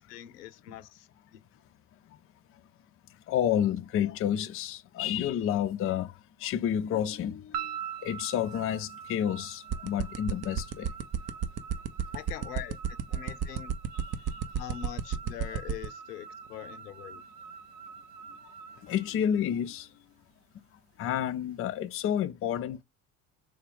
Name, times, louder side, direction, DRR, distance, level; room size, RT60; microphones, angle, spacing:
voice 1, 0.0-1.4 12.1-13.7 14.6-17.2, left 12 dB, 90° left, 0.5 m, -43 dB
voice 2, 3.3-7.7 8.0-10.9 13.9-14.0 14.3-14.4 18.8-19.9 21.0-22.8, left 9 dB, 30° left, 0.4 m, -30 dB
sound 1, 7.5-19.8, right 8 dB, 75° right, 0.7 m, -44 dB
sound 2, 9.7-15.9, right 9 dB, 35° right, 0.6 m, -29 dB
3.5 x 2.3 x 3.5 m
hypercardioid pair, 70°, 46 cm